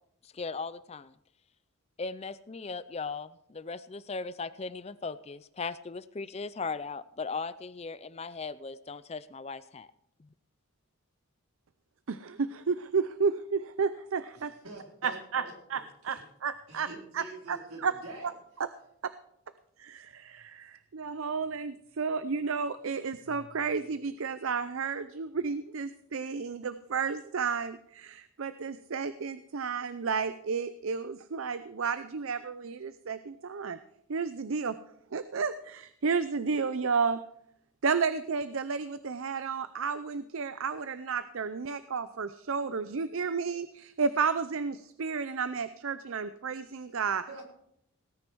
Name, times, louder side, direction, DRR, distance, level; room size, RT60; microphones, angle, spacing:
voice 1, 0.2-1.1 2.0-9.9 10.2-10.3, left 4 dB, 30° left, 15 dB, 0.4 m, -38 dB
voice 2, 12.1-14.5 15.0-15.4 15.7-16.9 17.1-17.6 17.8-17.9 19.8-33.8 34.1-34.7 35.1-37.2 37.8-47.2, right 5 dB, 70° right, 13 dB, 0.5 m, -32 dB
voice 3, 14.3-15.5 16.7-18.3 46.7-46.8 47.3-47.5, right 2 dB, 85° right, -1 dB, 4.3 m, -46 dB
18.0 x 9.7 x 4.6 m, 0.72 s
head